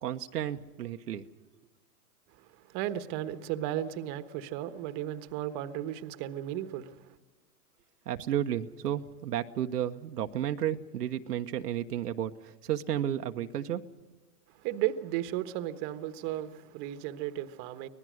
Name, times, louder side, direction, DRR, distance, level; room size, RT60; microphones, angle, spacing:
voice 1, 0.0-1.2 8.1-13.9, right 11 dB, 85° right, 1.2 m, -32 dB
voice 2, 2.7-7.0 14.6-17.9, right 12 dB, 40° right, 1.3 m, -34 dB
24.5 x 19.0 x 6.4 m
hypercardioid pair, 130°, 46 cm